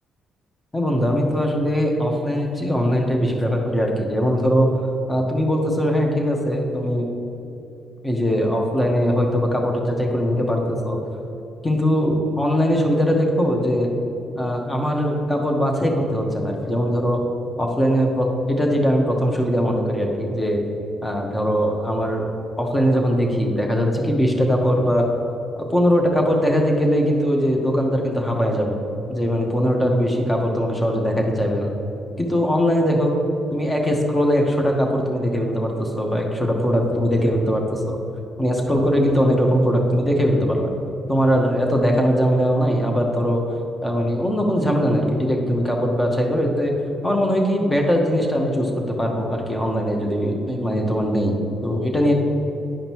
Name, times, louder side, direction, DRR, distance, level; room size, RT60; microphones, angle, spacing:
voice 1, 0.7-4.7 5.1-7.1 8.0-11.0 11.6-13.9 14.3-17.2 17.6-20.6 21.0-22.3 22.6-25.1 25.6-28.8 29.1-31.7 32.2-33.1 33.5-38.0 38.4-40.7 41.1-43.4 43.8-46.7 47.0-52.1, equal, 15° left, 1 dB, 1.1 m, -21 dB
10.0 x 5.2 x 3.0 m, 2.9 s
cardioid pair, 90°, 0 cm